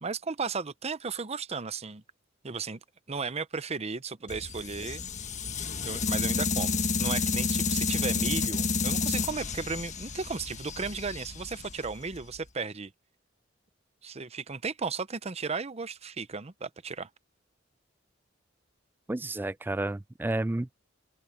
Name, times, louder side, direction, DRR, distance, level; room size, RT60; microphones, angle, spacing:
voice 1, 0.0-2.0 2.4-2.8 3.1-5.0 5.8-12.9 14.0-17.1, right 4 dB, 35° right, 0.8 m, -35 dB
sound 1, 4.3-12.4, left 4 dB, 40° left, 1.4 m, -30 dB
voice 2, 19.1-20.7, right 2 dB, 10° right, 0.3 m, -31 dB
open air
head